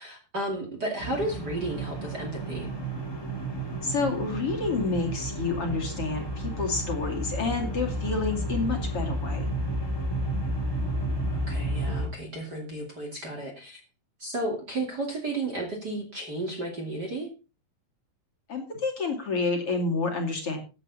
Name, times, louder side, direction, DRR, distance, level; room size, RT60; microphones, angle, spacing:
voice 1, 0.0-2.7 10.8-13.8 14.2-17.3, right 2 dB, 30° right, 0 dB, 2.7 m, -33 dB
sound 1, 1.0-12.1, right 1 dB, 5° left, 2.8 m, -31 dB
voice 2, 3.8-9.5 18.5-20.6, left 4 dB, 45° left, 2 dB, 3.0 m, -29 dB
15.5 x 9.4 x 4.1 m, 0.32 s
omnidirectional pair, 4.1 m